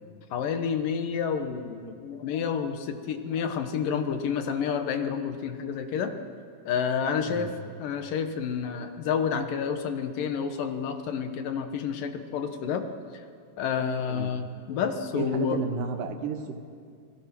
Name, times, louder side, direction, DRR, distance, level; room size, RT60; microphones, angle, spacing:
voice 1, 0.3-6.1 6.7-7.5 7.8-12.8 13.6-15.6, left 7 dB, 85° left, 7 dB, 3.0 m, -29 dB
voice 2, 15.1-16.6, right 5 dB, 80° right, 5 dB, 3.1 m, -32 dB
29.0 x 19.0 x 6.1 m, 2.2 s
omnidirectional pair, 3.8 m